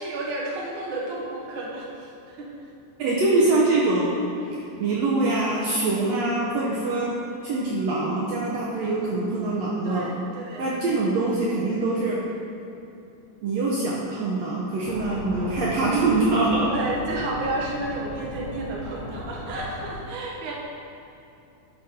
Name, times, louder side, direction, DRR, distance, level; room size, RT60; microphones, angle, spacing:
voice 1, 0.0-2.5 4.4-4.6 6.9-7.0 8.8-9.2 9.8-10.7 16.7-20.5, right 2 dB, 55° right, -3 dB, 1.6 m, -32 dB
voice 2, 3.0-4.1 4.8-7.2 7.4-10.1 10.6-12.2 13.4-16.7, right 2 dB, 70° right, -4 dB, 1.8 m, -24 dB
sound 1, 14.8-19.9, left 1 dB, 15° left, 1.3 m, -37 dB
11.5 x 5.2 x 4.2 m, 2.7 s
omnidirectional pair, 3.5 m